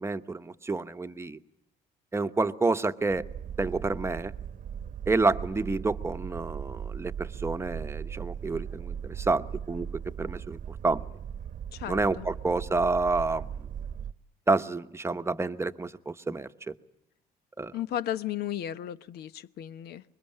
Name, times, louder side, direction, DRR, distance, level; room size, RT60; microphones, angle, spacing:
voice 1, 0.0-1.4 2.1-3.2 3.6-4.3 5.1-11.0 11.9-13.5 14.5-16.7 17.6-17.7, right 3 dB, 15° right, 10 dB, 1.0 m, -29 dB
Boat Water vehicle, 3.1-14.1, right 8 dB, 50° right, 1.0 m, -38 dB
voice 2, 11.7-12.3 17.7-20.0, left 11 dB, 70° left, 14 dB, 1.0 m, -34 dB
25.5 x 22.0 x 9.9 m, 0.80 s
cardioid pair, 110°, 17 cm